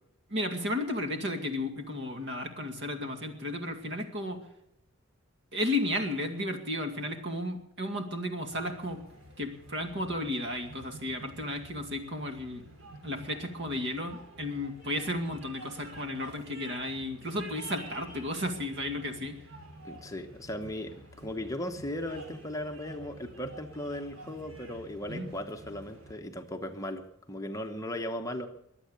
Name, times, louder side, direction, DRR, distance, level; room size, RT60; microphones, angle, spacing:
voice 1, 0.3-4.4 5.5-9.0 9.4-12.6 13.0-19.4 25.1-25.3, left 1 dB, 55° right, 5 dB, 2.3 m, -33 dB
sound 1, 8.5-26.1, right 1 dB, 80° right, 5.5 m, -49 dB
voice 2, 19.8-28.5, left 1 dB, 15° left, 5 dB, 1.1 m, -37 dB
22.5 x 8.5 x 6.7 m, 0.80 s
head